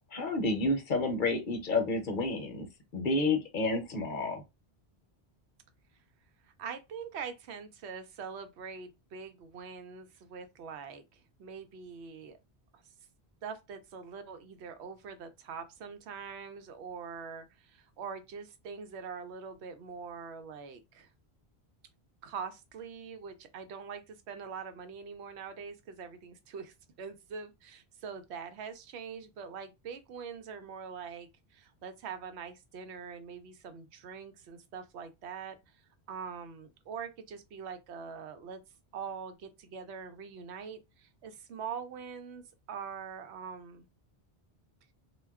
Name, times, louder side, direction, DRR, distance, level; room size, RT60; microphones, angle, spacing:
voice 1, 0.1-2.7 2.9-4.4, left 2 dB, 55° left, 0.8 m, -30 dB
voice 2, 6.6-12.4 12.7-12.8 13.4-21.1 22.2-35.6 36.1-38.6 38.9-42.4 42.7-43.9, right 6 dB, 90° right, 0.9 m, -43 dB
2.2 x 2.1 x 3.5 m
omnidirectional pair, 1.1 m